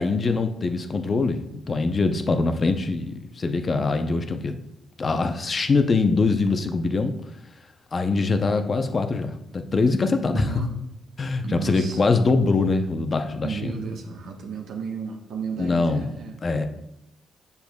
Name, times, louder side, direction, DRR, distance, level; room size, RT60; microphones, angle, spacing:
voice 1, 0.0-4.6 5.0-7.1 7.9-10.5 11.2-13.7 15.6-16.1 16.4-16.7, left 3 dB, 35° left, 7 dB, 0.7 m, -23 dB
voice 2, 10.1-10.8 11.4-12.1 13.4-16.7, right 5 dB, 70° right, 2 dB, 1.2 m, -33 dB
8.1 x 6.8 x 2.3 m, 0.83 s
cardioid pair, 90°, 0 cm